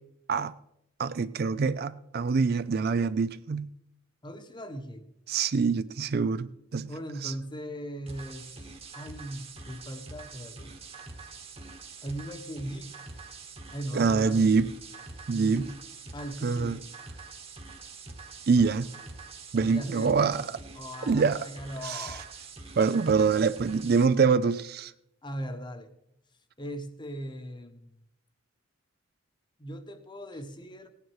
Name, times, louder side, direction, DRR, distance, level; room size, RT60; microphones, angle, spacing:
voice 1, 1.0-3.7 5.3-6.9 7.2-7.3 13.9-14.7 15.3-15.6 16.4-16.8 18.5-18.9 19.5-20.4 21.0-21.4 21.8-22.1 22.8-24.9, right 5 dB, 50° right, 0.4 m, -25 dB
voice 2, 4.2-5.1 6.9-8.5 8.9-10.7 12.0-13.0 13.7-14.8 15.3-15.8 16.1-16.8 19.6-20.4 20.7-22.3 25.2-25.9 26.6-27.9 29.6-30.9, equal, 25° left, 1.1 m, -39 dB
sound 1, 8.1-24.1, right 4 dB, 30° right, 1.3 m, -45 dB
17.5 x 9.2 x 4.7 m
head